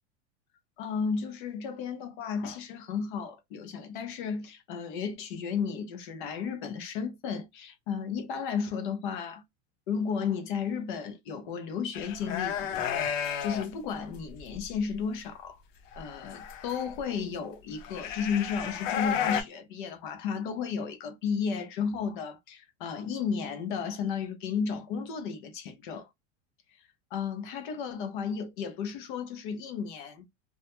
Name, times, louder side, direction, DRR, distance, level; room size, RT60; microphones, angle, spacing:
voice 1, 0.8-9.4 9.9-15.6 16.0-26.1 27.1-30.3, left 6 dB, 45° left, 0.4 m, -33 dB
sound 1, 11.9-13.7 14.1-14.6 15.9-17.0 17.8-19.4, left 8 dB, 80° left, 0.7 m, -32 dB
2.2 x 2.1 x 2.8 m
supercardioid pair, 165°, 37 cm